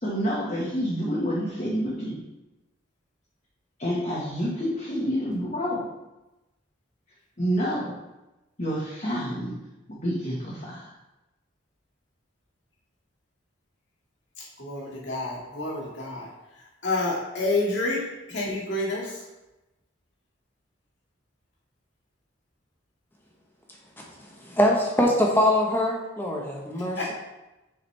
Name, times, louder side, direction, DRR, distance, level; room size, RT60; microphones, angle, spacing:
voice 1, 0.0-2.2 3.8-5.9 7.4-7.9 8.6-9.6 9.9-10.9, equal, 35° left, -6 dB, 1.3 m, -28 dB
voice 2, 14.6-16.3 16.8-18.0 18.3-19.1 27.0-27.1, left 2 dB, 65° left, -5 dB, 1.9 m, -28 dB
voice 3, 24.2-27.1, left 1 dB, 10° left, -1 dB, 0.9 m, -23 dB
6.9 x 5.1 x 3.2 m, 1.0 s
head